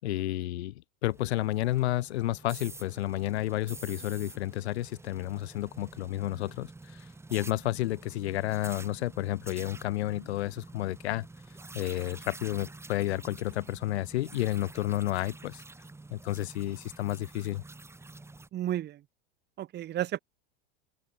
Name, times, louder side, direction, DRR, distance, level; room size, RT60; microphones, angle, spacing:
voice 1, 0.0-11.3 11.7-15.6 16.1-17.6, left 15 dB, 80° left, 5.5 m, -31 dB
sound 1, 1.1-18.5, right 2 dB, 10° right, 4.3 m, -48 dB
voice 2, 18.5-19.0 19.6-20.2, right 12 dB, 30° right, 2.0 m, -32 dB
open air
supercardioid pair, 130°, 32 cm